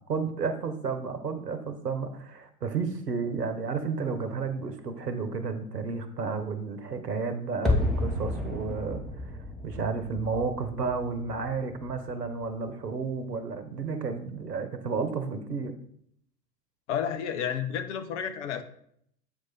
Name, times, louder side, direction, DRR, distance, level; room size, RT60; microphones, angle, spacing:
voice 1, 0.1-9.4 9.6-15.7, right 5 dB, 75° right, 9 dB, 1.1 m, -32 dB
sound 1, 7.6-12.6 12.8-12.9, left 2 dB, ahead, 1.2 m, -32 dB
voice 2, 16.9-18.6, left 8 dB, 45° left, 9 dB, 0.8 m, -31 dB
8.0 x 4.8 x 4.2 m, 0.68 s
figure-of-eight pair, 90°, 48 cm